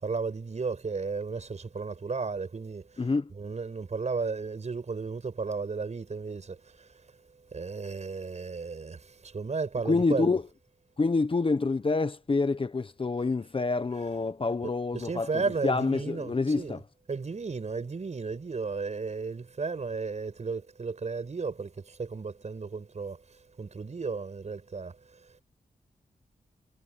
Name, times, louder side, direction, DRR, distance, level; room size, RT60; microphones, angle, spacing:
voice 1, 0.0-3.0 3.3-6.9 7.5-10.3 14.6-16.8 17.1-25.4, right 4 dB, 50° right, 5.5 m, -34 dB
voice 2, 3.0-3.3 9.8-10.4 11.0-16.8, left 3 dB, 35° left, 1.1 m, -27 dB
wide cardioid pair, 100°, 15 cm